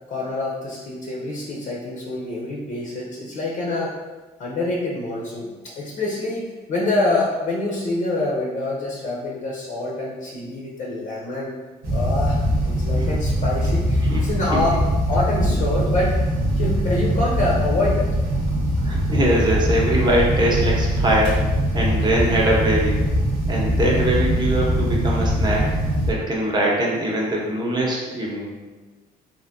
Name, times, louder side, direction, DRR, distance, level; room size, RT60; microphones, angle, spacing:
voice 1, 0.1-3.9 4.4-11.5 11.9-14.8 15.1-16.2 16.5-18.1, left 2 dB, 45° left, -3 dB, 0.6 m, -26 dB
sound 1, 11.8-26.1, equal, 75° right, 0.9 m, -22 dB
voice 2, 14.0-14.8 15.5-15.6 18.8-21.4 21.7-23.0 23.5-25.6 26.1-28.5, right 1 dB, 25° right, -3 dB, 0.8 m, -22 dB
3.4 x 2.5 x 2.6 m, 1.2 s
cardioid pair, 110°, 17 cm